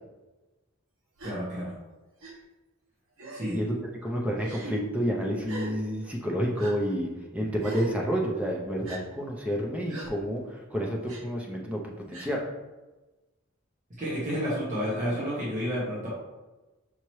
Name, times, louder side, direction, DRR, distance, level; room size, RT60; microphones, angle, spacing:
voice 1, 1.2-1.7 3.3-3.6 14.0-16.1, equal, 35° right, -8 dB, 1.2 m, -30 dB
Gasp, 1.2-1.4 2.2-2.3 3.2-3.6 4.4-4.7 5.4-5.7 6.6-6.7 7.6-7.9 8.8-9.0 9.9-10.1 11.1-11.2 12.1-12.3, right 2 dB, 75° right, 0.9 m, -40 dB
voice 2, 3.5-11.8 12.1-12.4, equal, 5° right, -2 dB, 0.6 m, -29 dB
5.7 x 2.9 x 3.1 m, 1.1 s
head